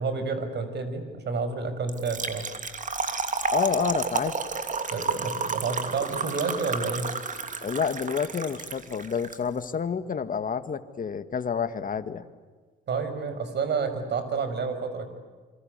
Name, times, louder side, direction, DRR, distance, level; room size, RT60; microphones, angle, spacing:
voice 1, 0.0-2.4 4.9-7.1 12.9-15.1, right 4 dB, 60° right, 10 dB, 6.0 m, -29 dB
Trickle dribble / Fill (with liquid), 1.9-9.4, right 4 dB, 40° right, 2.9 m, -31 dB
voice 2, 3.5-4.4 7.6-12.2, left 6 dB, 45° left, 10 dB, 2.0 m, -29 dB
28.0 x 25.5 x 8.3 m, 1.5 s
cardioid pair, 90°, 20 cm